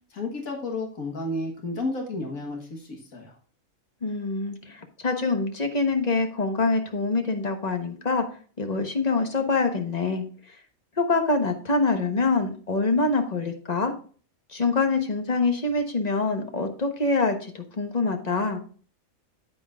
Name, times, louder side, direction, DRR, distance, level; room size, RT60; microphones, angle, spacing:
voice 1, 0.1-3.3, left 2 dB, 80° left, 2 dB, 1.9 m, -32 dB
voice 2, 4.0-8.2 8.6-10.2 11.0-13.9 14.5-18.6, left 3 dB, 30° left, 5 dB, 1.2 m, -25 dB
9.4 x 8.6 x 2.4 m, 0.41 s
omnidirectional pair, 1.5 m